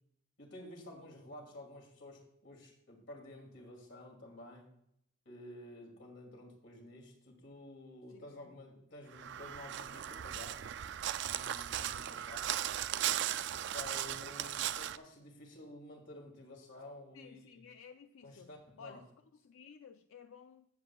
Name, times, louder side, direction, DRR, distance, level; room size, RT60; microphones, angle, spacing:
voice 1, 0.4-4.7 5.3-10.9 11.3-12.5 13.7-17.6 18.2-19.0, left 1 dB, 60° left, 2.5 m, -51 dB
voice 2, 8.1-8.5 17.1-20.7, left 6 dB, 75° left, 0.4 m, -55 dB
Crow, 9.1-15.0, right 11 dB, 60° right, 0.3 m, -37 dB
14.5 x 7.8 x 2.3 m
head